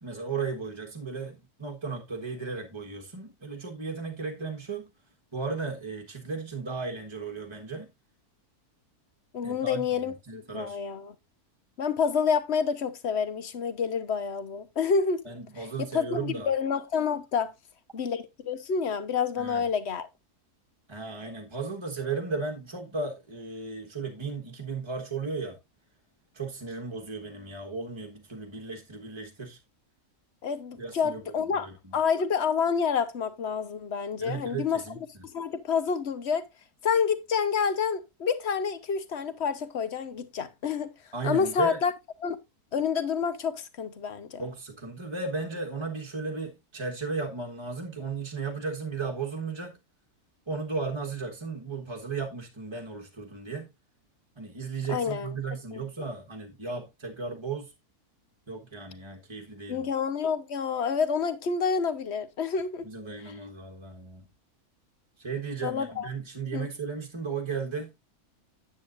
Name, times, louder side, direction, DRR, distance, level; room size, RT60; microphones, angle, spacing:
voice 1, 0.0-4.9 5.3-7.9 9.4-10.8 15.2-16.5 19.4-19.6 20.9-25.6 26.3-29.6 30.7-32.0 34.2-35.0 41.1-41.8 44.4-49.7 50.5-53.7 54.4-57.7 58.5-59.9 62.8-64.2 65.2-67.9, right 4 dB, 20° right, 1.3 m, -35 dB
voice 2, 9.3-11.1 11.8-15.2 15.8-17.5 17.9-20.1 30.4-31.7 31.9-34.8 35.3-36.5 36.8-40.9 41.2-41.9 42.2-42.4 42.7-44.4 54.9-55.3 55.7-55.8 59.7-62.9 65.6-66.1 66.5-66.7, left 6 dB, 50° left, 1.2 m, -28 dB
9.6 x 8.5 x 2.5 m
omnidirectional pair, 1.6 m